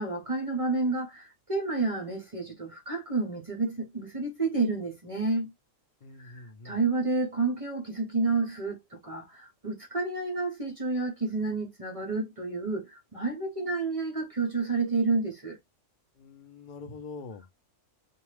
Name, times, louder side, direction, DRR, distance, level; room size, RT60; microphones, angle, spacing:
voice 1, 0.0-5.5 6.2-15.6, right 3 dB, 45° right, 0.4 m, -30 dB
voice 2, 6.0-6.8 16.2-17.5, left 4 dB, 65° left, 0.4 m, -44 dB
2.6 x 2.2 x 3.2 m
omnidirectional pair, 1.7 m